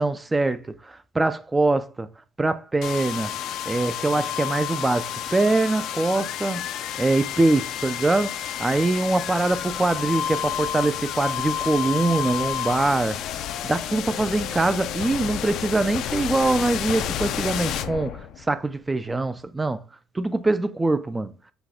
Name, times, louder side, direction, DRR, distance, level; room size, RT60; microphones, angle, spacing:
voice 1, 0.0-2.1 2.4-3.4 3.7-6.7 7.0-13.2 13.6-19.8 20.1-21.3, right 2 dB, 15° right, 0.4 m, -23 dB
sound 1, 2.8-18.6, left 10 dB, 65° left, 0.5 m, -30 dB
5.8 x 2.3 x 3.7 m
cardioid pair, 125°, 0 cm